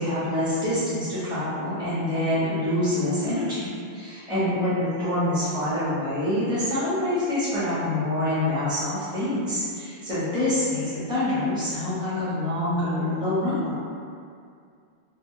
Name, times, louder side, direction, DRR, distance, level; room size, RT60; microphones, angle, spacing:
voice 1, 0.0-13.8, left 1 dB, 5° right, -12 dB, 0.8 m, -26 dB
2.3 x 2.1 x 3.7 m, 2.3 s
omnidirectional pair, 1.1 m